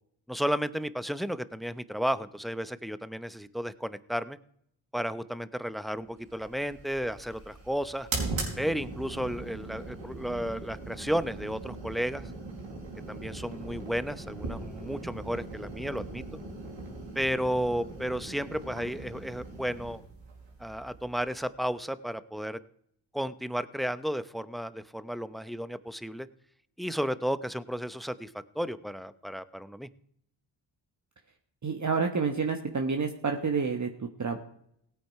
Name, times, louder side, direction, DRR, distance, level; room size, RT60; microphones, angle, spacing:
voice 1, 0.3-4.4 4.9-8.1 8.6-12.3 13.1-16.2 17.1-20.0 20.6-22.6 23.1-26.3 26.8-29.9, equal, ahead, 15 dB, 0.8 m, -33 dB
sound 1, 6.3-21.6, right 3 dB, 80° right, 4.8 m, -40 dB
voice 2, 31.6-34.4, right 5 dB, 40° right, 4 dB, 1.4 m, -29 dB
17.0 x 8.7 x 4.8 m, 0.69 s
cardioid pair, 60°, 45 cm